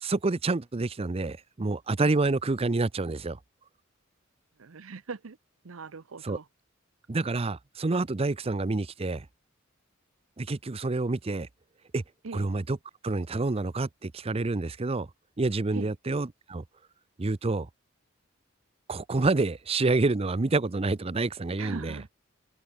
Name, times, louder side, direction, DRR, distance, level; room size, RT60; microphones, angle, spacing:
voice 1, 0.0-3.4 6.2-6.4 7.1-9.3 10.4-11.5 11.9-12.0 12.3-12.8 13.0-15.1 15.4-16.6 17.2-17.7 18.9-22.0, right 3 dB, 30° right, 0.6 m, -28 dB
voice 2, 4.6-5.4 5.6-6.5 12.2-12.5 15.7-15.9 21.6-22.1, right 4 dB, 90° right, 0.7 m, -40 dB
head